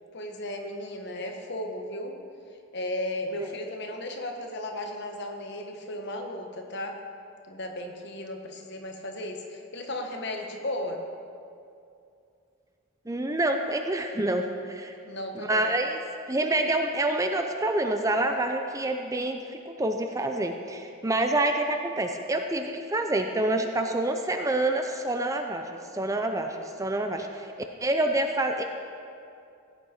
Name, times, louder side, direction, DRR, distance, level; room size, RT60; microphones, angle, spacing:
voice 1, 0.1-2.2 2.7-7.0 7.5-11.0 15.0-15.7, left 1 dB, 55° left, 3 dB, 1.2 m, -35 dB
voice 2, 13.1-15.0 15.4-16.0 16.3-25.7 25.9-27.5 27.8-28.6, right 1 dB, 15° right, 5 dB, 0.5 m, -27 dB
16.5 x 8.6 x 4.3 m, 2.5 s
head